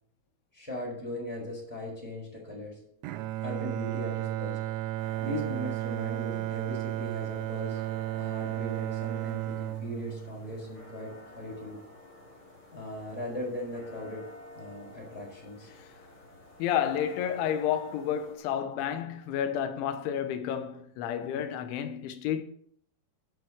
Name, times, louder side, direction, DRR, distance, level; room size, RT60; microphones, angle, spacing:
voice 1, 0.5-2.8 3.4-4.6 5.2-7.8 8.1-11.8 12.7-14.2 14.5-15.7, left 1 dB, ahead, 5.2 m, -39 dB
Bowed string instrument, 3.0-11.3, right 15 dB, 80° right, 2.6 m, -34 dB
sound 1, 5.0-18.4, left 1 dB, 30° left, 4.2 m, -51 dB
voice 2, 16.6-22.4, left 9 dB, 80° left, 3.4 m, -30 dB
9.1 x 8.3 x 7.8 m
omnidirectional pair, 5.5 m